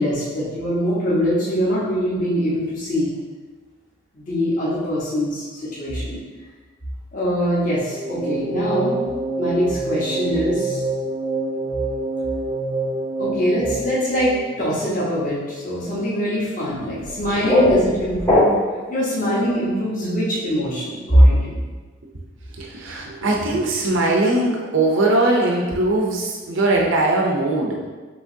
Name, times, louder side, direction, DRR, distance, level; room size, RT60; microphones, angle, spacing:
voice 1, 0.0-3.1 4.1-6.2 7.1-9.0 9.4-10.8 13.2-18.6 18.9-21.5, equal, 40° left, -8 dB, 1.2 m, -22 dB
sound 1, 7.9-15.1, right 2 dB, 20° right, 0.3 m, -27 dB
sound 2, 17.0-18.9, left 1 dB, 15° left, 0.7 m, -19 dB
voice 2, 22.6-27.8, right 2 dB, 65° right, -1 dB, 0.6 m, -20 dB
6.1 x 3.0 x 2.7 m, 1.4 s
head